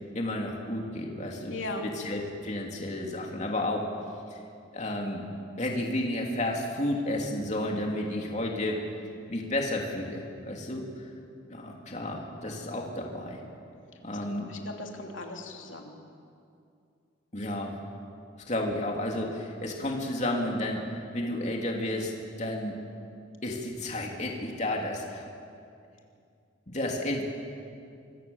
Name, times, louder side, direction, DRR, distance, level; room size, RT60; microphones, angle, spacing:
voice 1, 0.1-1.6 1.8-3.9 4.7-5.3 5.6-8.8 9.3-10.8 11.5-13.4 14.0-14.5 17.3-17.7 18.5-22.1 22.4-22.8 23.4-25.2 26.7-27.2, left 1 dB, 35° left, 0 dB, 3.0 m, -31 dB
voice 2, 1.5-1.9 14.3-15.9, left 2 dB, 85° left, 1 dB, 2.9 m, -38 dB
25.5 x 23.5 x 7.2 m, 2.4 s
head